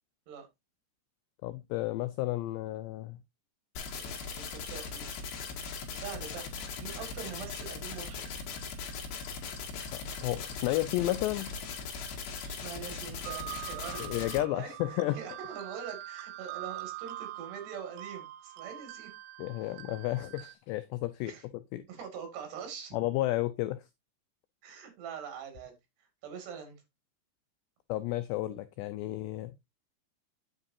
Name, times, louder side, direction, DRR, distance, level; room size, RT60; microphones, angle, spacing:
voice 1, 1.4-3.2 9.9-11.5 14.0-15.2 19.4-21.3 21.7-21.8 22.9-23.8 27.9-29.5, left 16 dB, 85° left, 2.4 m, -32 dB
sound 1, 3.8-14.4, left 5 dB, 65° left, 4.0 m, -39 dB
voice 2, 4.0-5.1 5.9-8.2 12.5-19.1 21.3-21.4 21.9-23.0 24.6-25.7 26.2-26.8, right 7 dB, 60° right, 4.2 m, -44 dB
sound 2, 13.2-20.5, right 16 dB, 80° right, 3.2 m, -44 dB
9.7 x 7.9 x 2.7 m
omnidirectional pair, 5.7 m